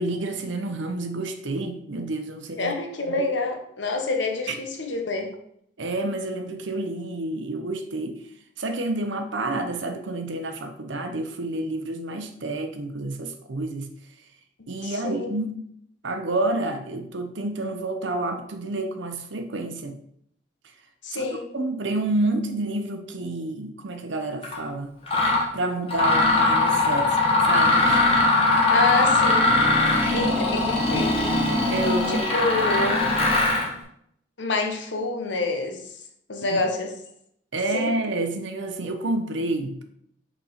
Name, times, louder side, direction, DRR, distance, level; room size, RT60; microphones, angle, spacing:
voice 1, 0.0-2.7 3.1-3.2 4.5-4.6 5.8-8.2 8.6-13.9 14.7-15.7 16.0-20.0 21.1-21.3 21.5-24.9 25.5-27.2 27.5-28.0 29.8-30.3 31.7-32.3 36.5-36.6 37.5-39.8, right 2 dB, 90° right, 7 dB, 0.8 m, -29 dB
voice 2, 2.6-5.3 14.8-15.3 21.0-21.5 28.7-29.5 30.1-31.3 32.1-33.2 34.4-35.8 36.3-36.9 37.7-37.9, left 3 dB, 80° left, 4 dB, 1.1 m, -27 dB
Mechanisms, 24.4-24.6 25.1-25.5 25.9-33.7, left 2 dB, 30° left, 1.5 m, -20 dB
5.1 x 4.2 x 5.0 m, 0.71 s
head